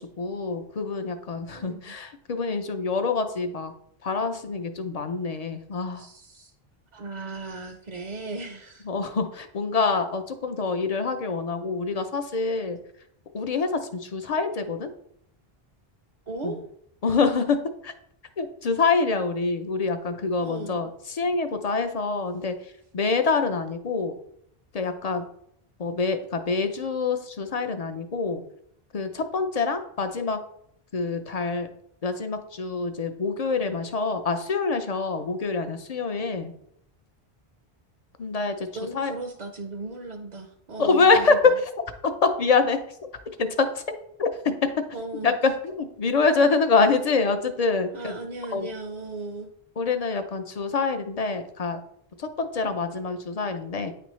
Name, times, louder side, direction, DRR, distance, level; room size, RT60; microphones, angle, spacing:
voice 1, 0.2-3.7 4.0-6.1 8.9-12.8 13.3-14.9 16.4-16.6 17.0-17.9 18.4-24.1 24.7-25.3 25.8-28.4 28.9-30.4 30.9-31.7 32.0-36.5 38.2-38.7 38.9-39.1 40.8-41.4 42.2-42.8 43.4-43.8 44.2-44.3 44.6-44.7 45.2-48.2 48.5-48.7 49.8-51.8 52.2-53.9, left 4 dB, 50° left, 7 dB, 0.5 m, -25 dB
voice 2, 1.5-1.9 6.0-6.5 6.9-8.9 16.3-16.6 20.4-20.9 38.8-41.4 44.9-45.3 47.9-49.5, right 3 dB, 50° right, 4 dB, 0.6 m, -36 dB
9.1 x 3.4 x 3.1 m, 0.70 s
omnidirectional pair, 1.0 m